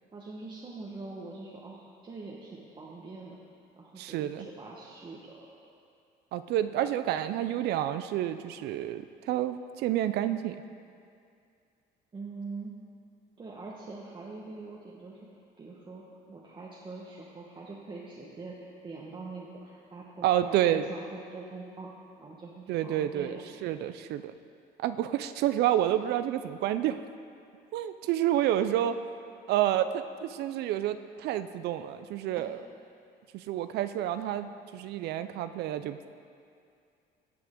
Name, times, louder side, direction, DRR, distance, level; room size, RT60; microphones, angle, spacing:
voice 1, 0.1-3.4 3.8-5.5 12.1-12.7 13.4-21.9 22.2-23.8 32.4-32.5, right 3 dB, 30° right, -4 dB, 1.1 m, -44 dB
voice 2, 4.0-4.5 6.3-10.6 20.2-20.8 22.7-24.3 24.8-27.0 27.7-29.0 29.5-32.6 33.3-36.0, right 12 dB, 75° right, 11 dB, 0.4 m, -29 dB
17.5 x 6.0 x 3.7 m, 2.4 s
cardioid pair, 110°, 17 cm